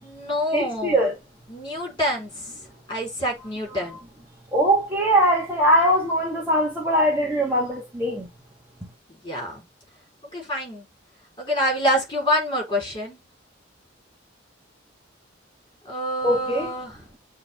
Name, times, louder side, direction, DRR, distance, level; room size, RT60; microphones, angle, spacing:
voice 1, 0.0-1.0 1.5-2.3 2.9-4.1 9.2-9.6 10.3-10.9 11.4-13.2 15.9-16.9, equal, 25° left, 5.0 m, -26 dB
voice 2, 0.5-1.1 4.5-8.3 16.2-16.7, equal, 10° right, 1.8 m, -21 dB
8.8 x 3.4 x 3.7 m
head